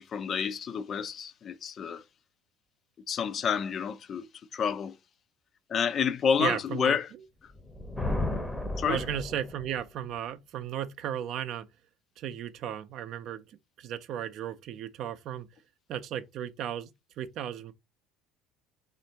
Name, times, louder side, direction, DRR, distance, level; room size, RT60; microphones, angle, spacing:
voice 1, 0.0-2.0 3.1-4.3 4.5-5.0 5.7-7.1 8.8-9.0, left 7 dB, 40° left, 0.3 m, -29 dB
voice 2, 6.4-7.2 8.9-11.7 12.2-15.5 15.9-16.9 17.2-17.7, right 10 dB, 55° right, 0.4 m, -35 dB
Thunder, 7.5-9.9, left 2 dB, 10° left, 0.7 m, -34 dB
3.3 x 2.5 x 2.8 m
hypercardioid pair, 65°, 0 cm